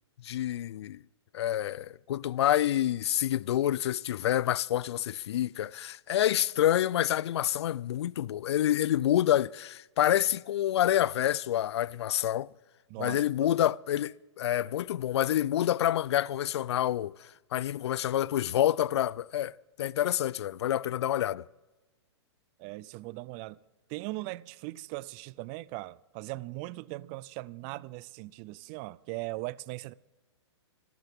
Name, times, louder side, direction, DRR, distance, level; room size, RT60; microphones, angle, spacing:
voice 1, 0.2-1.0 1.3-12.5 13.0-21.4, left 12 dB, 65° left, 0.4 m, -28 dB
voice 2, 12.9-13.2 22.6-23.6 23.9-29.9, right 20 dB, 30° right, 0.4 m, -39 dB
27.5 x 12.5 x 3.6 m
hypercardioid pair, 135°, 15 cm